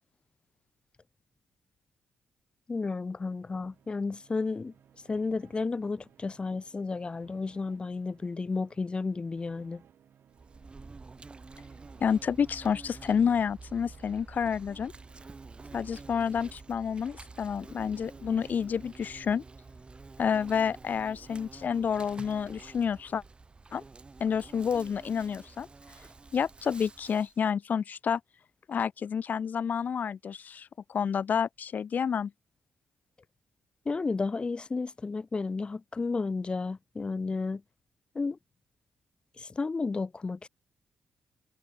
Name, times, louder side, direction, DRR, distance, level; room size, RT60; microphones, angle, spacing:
voice 1, 2.7-4.7 5.1-9.8 33.9-37.6 38.1-38.4 39.4-40.5, left 4 dB, 30° left, 0.5 m, -32 dB
sound 1, 3.0-19.9, right 9 dB, 70° right, 4.1 m, -61 dB
Insect, 10.3-27.4, right 3 dB, 30° right, 5.5 m, -49 dB
voice 2, 12.0-14.9 15.7-19.4 20.2-23.2 23.7-23.8 24.2-25.7 26.3-28.2 28.7-32.3, left 7 dB, 55° left, 1.0 m, -29 dB
cardioid pair, 80°, 4 cm